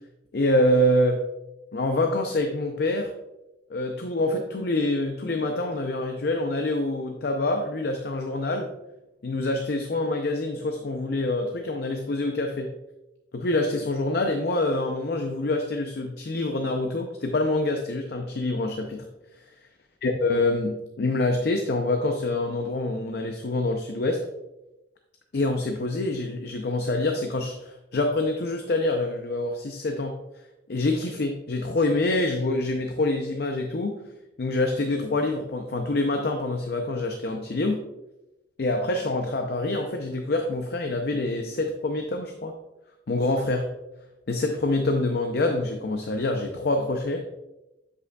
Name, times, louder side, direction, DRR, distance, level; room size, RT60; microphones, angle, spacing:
voice 1, 0.3-1.2 1.7-3.1 3.7-8.7 9.2-12.7 13.3-19.1 20.0-24.2 25.3-30.2 30.7-34.0 34.4-37.8 38.6-42.5 43.1-43.7 44.3-47.3, left 2 dB, 55° left, 4 dB, 0.5 m, -26 dB
8.2 x 5.2 x 2.3 m, 0.94 s
head